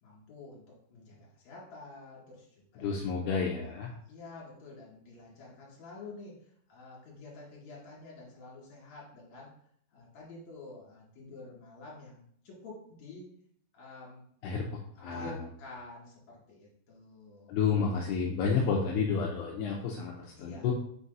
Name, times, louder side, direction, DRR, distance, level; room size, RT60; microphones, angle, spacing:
voice 1, 0.0-2.9 3.3-3.7 4.1-9.5 9.9-13.3 13.7-14.3 14.9-17.5 20.4-20.7, left 3 dB, 50° left, -5 dB, 2.7 m, -49 dB
voice 2, 2.8-3.9 14.4-14.6 15.0-15.4 17.5-20.7, left 5 dB, 85° left, -2 dB, 2.4 m, -30 dB
6.2 x 6.0 x 2.7 m, 0.64 s
omnidirectional pair, 5.7 m